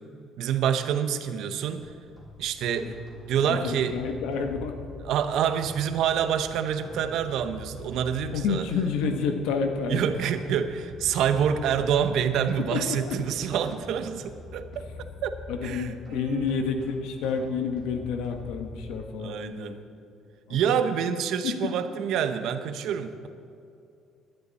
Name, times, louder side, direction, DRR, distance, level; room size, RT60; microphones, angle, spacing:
voice 1, 0.4-1.9 2.4-2.9 3.3-4.0 5.0-8.7 9.9-14.7 15.2-15.3 15.6-16.6 19.2-19.8 20.5-23.3, right 8 dB, 65° right, 9 dB, 0.8 m, -27 dB
sound 1, 1.8-19.0, left 2 dB, 15° left, 3.3 m, -45 dB
voice 2, 3.4-4.7 8.3-10.2 12.6-13.2 15.5-19.8 20.5-20.8 21.4-21.7, left 5 dB, 90° left, 5 dB, 1.4 m, -29 dB
19.0 x 11.0 x 4.2 m, 2.5 s
cardioid pair, 160°, 0 cm